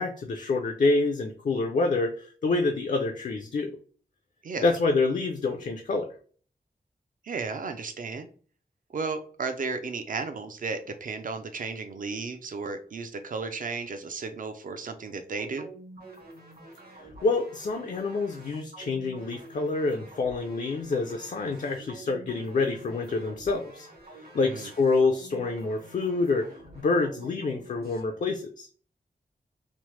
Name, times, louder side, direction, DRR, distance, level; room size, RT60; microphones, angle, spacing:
voice 1, 0.0-3.8 4.6-6.1 17.0-23.9 24.1-26.5 26.7-28.7, left 3 dB, 50° left, 4 dB, 0.4 m, -27 dB
voice 2, 4.4-4.7 7.2-8.3 8.9-15.7 24.4-24.7, right 4 dB, 55° right, 8 dB, 0.4 m, -34 dB
sound 1, 15.4-28.0, right 2 dB, 70° right, 1.0 m, -48 dB
3.0 x 2.0 x 3.0 m, 0.43 s
wide cardioid pair, 120°, 16 cm